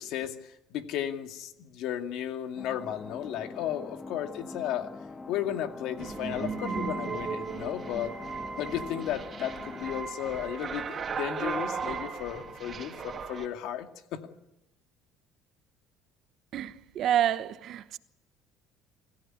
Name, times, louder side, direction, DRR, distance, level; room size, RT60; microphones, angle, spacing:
voice 1, 0.0-4.9 5.3-8.1 8.6-14.2, left 10 dB, 70° left, 2.3 m, -34 dB
sound 1, 2.6-10.0, left 3 dB, 20° left, 1.5 m, -43 dB
sound 2, 6.0-13.5, right 5 dB, 35° right, 2.8 m, -36 dB
voice 2, 16.5-18.0, right 11 dB, 55° right, 1.0 m, -28 dB
26.5 x 15.5 x 9.9 m
cardioid pair, 115°, 0 cm